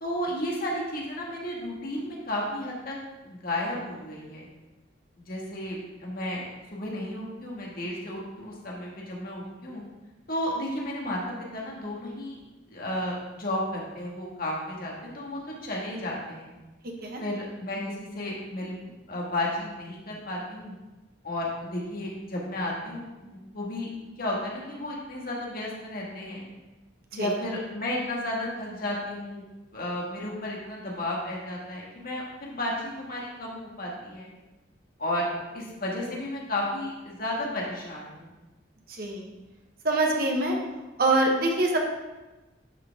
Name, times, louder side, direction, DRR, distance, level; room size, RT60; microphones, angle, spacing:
voice 1, 0.0-3.0 3.2-4.5 5.2-6.5 6.7-9.8 10.3-12.4 12.7-16.5 17.2-20.7 21.2-26.4 27.1-29.4 29.7-34.3 35.0-38.3, left 1 dB, 50° left, -3 dB, 1.9 m, -33 dB
voice 2, 38.9-39.3 39.8-40.6 41.0-41.8, right 2 dB, 50° right, 1 dB, 1.4 m, -24 dB
11.0 x 4.8 x 3.6 m, 1.1 s
head